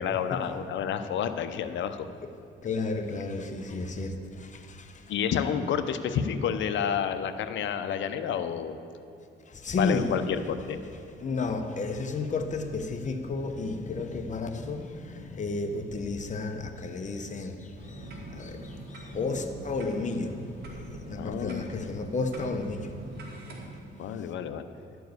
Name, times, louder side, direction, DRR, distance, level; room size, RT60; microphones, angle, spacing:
voice 1, 0.0-2.1 5.1-8.8 9.8-10.8 21.2-21.9 24.0-24.6, left 8 dB, 70° left, 0.7 m, -30 dB
voice 2, 2.6-5.1 9.5-10.1 11.2-24.3, left 3 dB, 40° left, 0.9 m, -33 dB
sound 1, 17.7-23.7, right 2 dB, 55° right, 2.1 m, -43 dB
11.5 x 4.7 x 7.8 m
cardioid pair, 90°, 20 cm